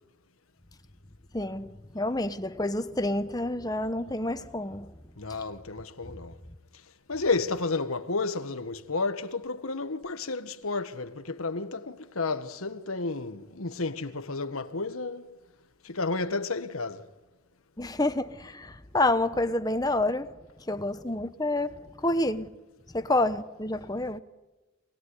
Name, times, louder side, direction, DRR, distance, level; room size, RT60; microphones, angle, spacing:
voice 1, 1.3-4.9 17.8-20.4 20.7-22.6 22.9-24.2, left 2 dB, 20° left, 1.0 m, -28 dB
voice 2, 5.2-6.4 7.1-15.4 15.8-17.1, left 3 dB, 90° left, 1.6 m, -31 dB
27.5 x 20.0 x 9.9 m
head